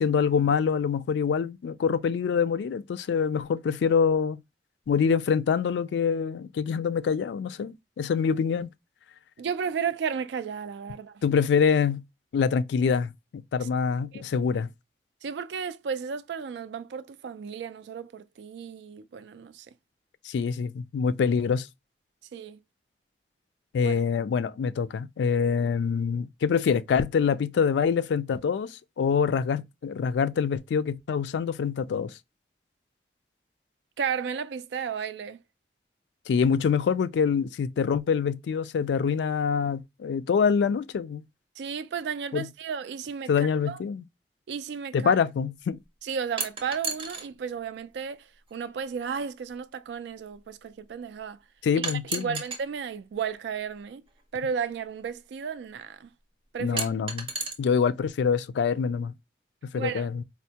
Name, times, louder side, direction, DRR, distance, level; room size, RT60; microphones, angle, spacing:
voice 1, 0.0-4.4 4.9-8.7 11.2-12.0 12.3-14.7 20.2-21.7 23.7-32.1 36.3-41.2 42.3-42.5 43.3-44.0 44.9-45.8 51.6-52.4 56.6-57.3 57.6-59.1 59.7-60.2, left 6 dB, 80° left, 0.3 m, -25 dB
voice 2, 9.4-11.2 13.6-13.7 14.1-14.2 15.2-19.7 22.3-22.6 23.8-23.9 34.0-35.4 41.6-43.8 44.5-45.2 46.0-51.4 51.7-54.0 54.3-56.1 56.5-56.9 59.7-60.1, right 6 dB, 75° right, 0.3 m, -33 dB
sound 1, 46.4-47.3 48.5-48.6 51.8-52.6 54.1-54.2 56.8-57.5, right 4 dB, 30° right, 0.6 m, -32 dB
4.3 x 2.0 x 2.8 m
head